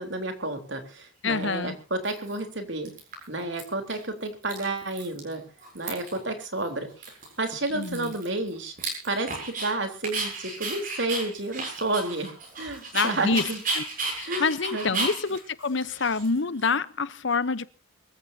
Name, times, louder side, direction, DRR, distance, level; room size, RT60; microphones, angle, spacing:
voice 1, 0.0-2.9 3.3-5.4 5.7-8.7 9.0-13.6 14.3-15.1, right 2 dB, 60° right, 3.7 m, -31 dB
voice 2, 1.2-1.8 7.7-8.1 12.9-13.5 13.7-13.8 14.2-17.7, left 4 dB, 60° left, 0.9 m, -27 dB
Dog, 1.3-1.4 2.0-2.5 2.8-3.6 3.9-4.0 4.3-5.3 5.6-6.2 6.6-6.7 7.0-9.7 10.0-16.7, right 3 dB, 40° right, 7.8 m, -34 dB
24.5 x 15.0 x 2.8 m
head